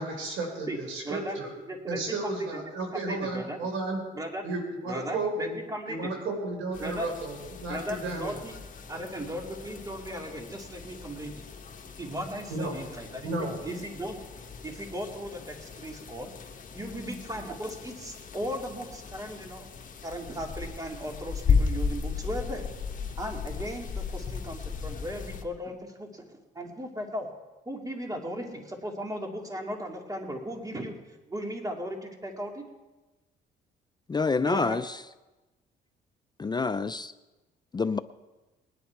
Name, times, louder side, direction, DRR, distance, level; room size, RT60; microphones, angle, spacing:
voice 1, 0.0-1.5 1.9-4.0 4.4-5.6 5.9-8.4 12.5-12.7 13.2-13.6, right 2 dB, 90° right, 2 dB, 4.2 m, -33 dB
voice 2, 1.0-1.4 1.6-3.6 4.1-4.4 4.9-6.1 6.8-7.1 7.7-8.6 8.9-11.4 12.0-14.2 14.6-16.3 16.7-19.7 20.0-22.7 23.2-27.3 27.7-31.0 31.3-32.6 34.4-34.8, equal, 20° right, 2 dB, 2.5 m, -37 dB
sound 1, 6.7-25.4, left 5 dB, 40° left, 1.6 m, -35 dB
voice 3, 34.1-34.8 36.4-37.1 37.7-38.0, left 4 dB, 20° left, 12 dB, 0.4 m, -27 dB
20.5 x 10.0 x 4.6 m, 1.1 s
cardioid pair, 90°, 20 cm